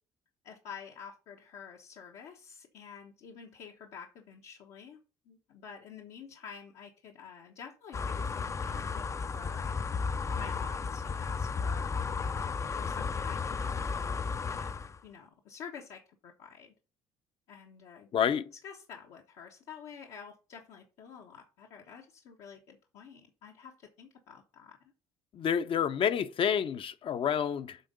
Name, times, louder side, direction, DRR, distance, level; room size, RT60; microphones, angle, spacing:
voice 1, 0.4-5.0 5.3-9.1 9.3-9.8 10.4-11.9 12.6-14.7 15.0-16.7 17.5-18.1 18.6-24.8, left 7 dB, 75° left, 1.2 m, -49 dB
sound 1, 7.9-15.0, left 5 dB, 25° left, 0.5 m, -34 dB
voice 2, 18.1-18.5 25.3-27.8, left 8 dB, 50° left, 0.8 m, -29 dB
8.2 x 3.6 x 5.3 m
supercardioid pair, 80°, 11 cm